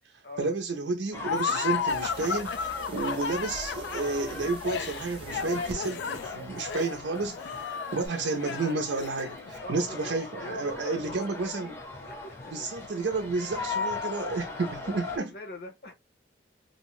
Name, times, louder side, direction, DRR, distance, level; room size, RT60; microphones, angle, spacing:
voice 1, 0.4-11.8 12.5-15.3, right 3 dB, 90° right, 0.5 m, -31 dB
sound 1, 1.1-15.2, left 3 dB, 15° left, 0.6 m, -39 dB
Laughter, 1.2-9.5, left 6 dB, 80° left, 0.3 m, -33 dB
sound 2, 1.9-5.8 8.0-8.1, right 3 dB, 30° right, 0.4 m, -46 dB
voice 2, 7.5-8.0 9.6-12.8 13.3-13.4 15.1-15.9, left 2 dB, 60° left, 0.9 m, -43 dB
2.7 x 2.1 x 3.0 m
head